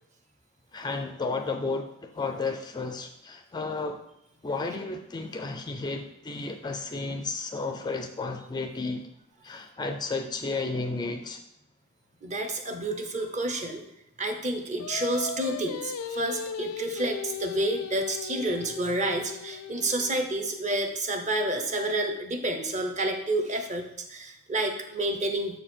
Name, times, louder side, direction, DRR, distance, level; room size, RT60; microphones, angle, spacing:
voice 1, 0.7-4.0 4.4-9.1 9.4-11.4, left 3 dB, 20° left, 6 dB, 0.4 m, -32 dB
voice 2, 12.2-13.8 14.2-25.6, right 2 dB, 35° right, 5 dB, 0.8 m, -29 dB
Singing, 14.8-20.2, left 6 dB, 90° left, 0.4 m, -37 dB
6.9 x 4.4 x 4.4 m, 0.81 s
head